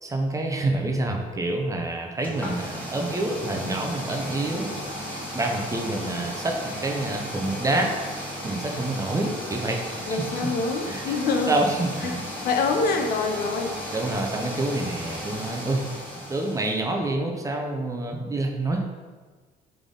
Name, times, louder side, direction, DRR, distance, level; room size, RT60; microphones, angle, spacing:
voice 1, 0.0-9.8 10.1-10.5 10.8-11.2 11.5-12.2 13.9-15.8 16.2-18.8, right 2 dB, 20° right, 2 dB, 0.6 m, -27 dB
sound 1, 2.2-16.8, equal, 10° left, 1.2 m, -35 dB
voice 2, 10.1-11.5 12.0-12.1 12.4-13.8, left 4 dB, 65° left, 4 dB, 0.6 m, -25 dB
3.8 x 3.5 x 3.7 m, 1.4 s
cardioid pair, 110°, 17 cm